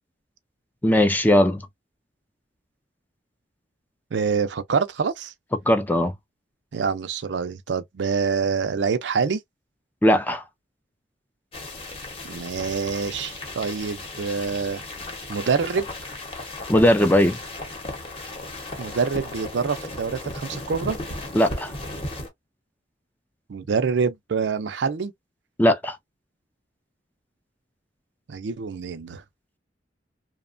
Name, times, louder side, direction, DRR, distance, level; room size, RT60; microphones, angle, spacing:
voice 1, 0.8-1.6 5.7-6.1 10.0-10.4 16.7-17.4 21.3-21.7 25.6-26.0, left 1 dB, 10° left, 0.4 m, -18 dB
voice 2, 4.1-5.3 6.7-9.4 12.3-14.8 15.3-15.9 18.8-21.0 23.5-25.1 28.3-29.2, right 5 dB, 70° right, 0.5 m, -26 dB
sound 1, 11.5-22.3, left 2 dB, 30° left, 0.9 m, -36 dB
2.8 x 2.1 x 2.5 m
head